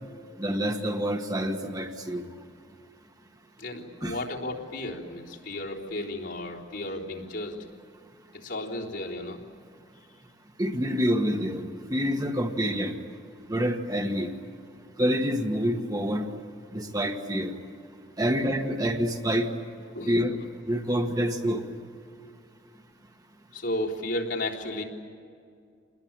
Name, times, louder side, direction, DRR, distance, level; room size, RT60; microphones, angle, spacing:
voice 1, 0.4-2.2 4.0-4.2 10.6-11.6 11.9-12.9 13.5-14.3 15.0-16.3 16.7-17.5 18.2-19.5 20.0-20.4 20.7-21.6, equal, 20° right, 4 dB, 1.5 m, -27 dB
voice 2, 3.6-7.6 8.3-9.4 18.2-18.3 19.9-20.2 23.5-24.8, left 1 dB, 70° left, -4 dB, 3.7 m, -33 dB
28.5 x 20.5 x 8.9 m, 2.3 s
head